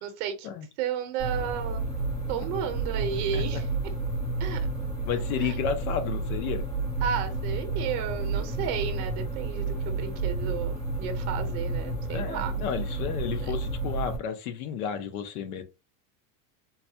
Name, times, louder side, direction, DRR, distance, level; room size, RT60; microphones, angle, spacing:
voice 1, 0.0-0.5 0.8-1.8 2.3-3.7 4.4-4.6 5.4-5.6 7.0-12.5 13.3-13.5, right 8 dB, 40° right, 0.7 m, -33 dB
sound 1, 1.2-14.2, right 3 dB, 10° left, 0.4 m, -31 dB
voice 2, 5.1-6.7 12.1-15.6, left 8 dB, 75° left, 0.9 m, -32 dB
4.0 x 2.3 x 2.8 m
supercardioid pair, 175°, 44 cm